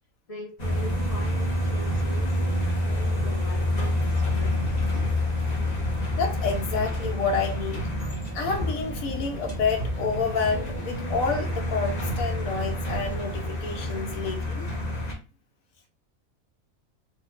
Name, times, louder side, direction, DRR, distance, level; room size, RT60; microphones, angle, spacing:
voice 1, 0.3-2.5 2.8-4.7, right 1 dB, 55° left, 0.4 m, -42 dB
sound 1, 0.6-15.1, left 1 dB, 35° left, 0.9 m, -28 dB
voice 2, 6.2-7.9 8.3-14.7, left 5 dB, 75° left, 1.3 m, -29 dB
4.4 x 2.5 x 2.4 m
omnidirectional pair, 1.5 m